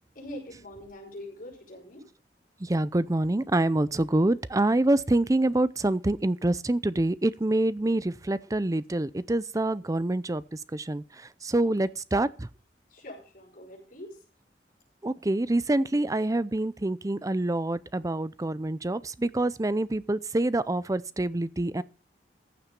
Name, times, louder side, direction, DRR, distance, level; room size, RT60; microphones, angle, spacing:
voice 1, 0.1-2.1 11.6-11.7 12.9-14.2, left 1 dB, 55° left, 5.9 m, -43 dB
voice 2, 2.6-12.5 15.0-21.8, right 1 dB, 20° right, 0.5 m, -26 dB
15.0 x 7.3 x 5.3 m
head